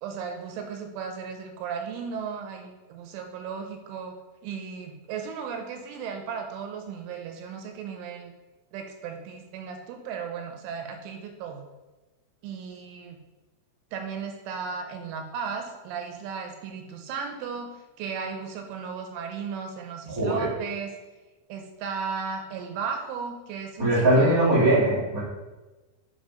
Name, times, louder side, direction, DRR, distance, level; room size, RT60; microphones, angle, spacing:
voice 1, 0.0-4.2 4.4-8.3 8.7-11.6 12.4-13.2 13.9-20.9 21.5-24.4, right 6 dB, 80° right, 4 dB, 3.1 m, -35 dB
voice 2, 20.1-20.5 23.8-25.2, right 1 dB, 35° right, -8 dB, 0.4 m, -21 dB
7.3 x 4.9 x 5.0 m, 1.2 s
omnidirectional pair, 5.9 m